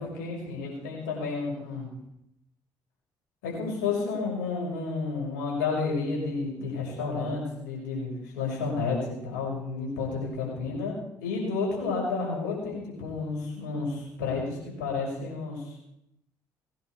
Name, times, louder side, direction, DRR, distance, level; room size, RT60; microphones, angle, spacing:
voice 1, 0.0-1.9 3.4-15.7, left 4 dB, 85° left, -2 dB, 5.9 m, -31 dB
19.5 x 10.5 x 4.8 m, 0.80 s
hypercardioid pair, 55°, 10 cm